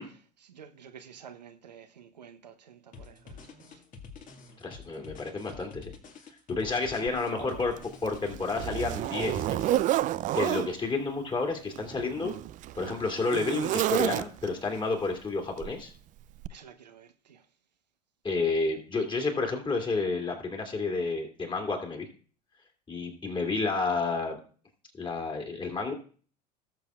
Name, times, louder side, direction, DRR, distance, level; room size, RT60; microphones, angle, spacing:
voice 1, 0.0-3.8 6.9-7.8 16.5-17.4, right 8 dB, 80° right, 0.9 m, -49 dB
sound 1, 2.9-10.2, left 5 dB, 40° left, 2.0 m, -48 dB
voice 2, 4.6-5.9 6.5-7.7 8.0-9.8 10.3-12.3 12.7-15.9 18.2-22.1 22.9-24.4 24.9-25.9, left 3 dB, 20° left, 2.7 m, -30 dB
Zipper (clothing), 7.1-7.2 7.8-10.7 11.7-14.6 15.6-15.8 16.4-16.5, right 14 dB, 40° right, 0.4 m, -30 dB
18.5 x 7.0 x 2.4 m
figure-of-eight pair, 75°, 21 cm